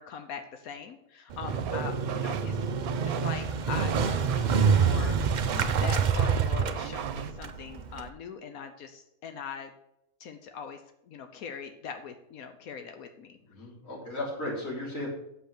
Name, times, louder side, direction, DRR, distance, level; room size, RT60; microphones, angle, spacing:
voice 1, 0.0-2.6 3.0-9.7 10.2-10.8 11.1-13.4, left 6 dB, 85° left, 7 dB, 1.3 m, -41 dB
Motorcycle, 1.3-8.1, right 6 dB, 55° right, 0.5 m, -27 dB
sound 1, 1.5-7.3, right 9 dB, 85° right, 1.1 m, -39 dB
voice 2, 13.5-15.1, left 1 dB, 65° left, -5 dB, 4.2 m, -35 dB
7.9 x 6.9 x 6.6 m, 0.79 s
omnidirectional pair, 1.5 m